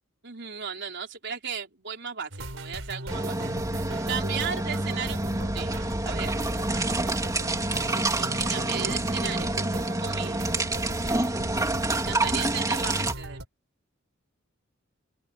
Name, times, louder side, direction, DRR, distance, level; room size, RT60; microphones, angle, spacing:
voice 1, 0.2-3.4 4.0-6.4 7.9-9.6 10.0-10.6 11.9-13.4, right 7 dB, 60° right, 4.1 m, -36 dB
sound 1, 2.3-13.5, right 1 dB, 85° right, 4.6 m, -37 dB
sound 2, 3.1-13.1, right 2 dB, 15° right, 2.9 m, -28 dB
open air
head